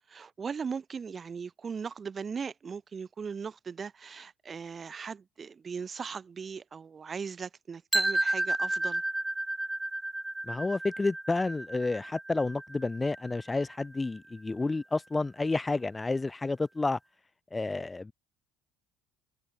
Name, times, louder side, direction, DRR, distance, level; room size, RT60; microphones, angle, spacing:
voice 1, 0.1-9.0, right 6 dB, 30° right, 7.4 m, -38 dB
sound 1, 7.9-13.8, right 2 dB, 10° right, 0.6 m, -32 dB
voice 2, 10.4-17.0 17.5-18.1, left 3 dB, 15° left, 3.2 m, -30 dB
supercardioid pair, 100°, 0 cm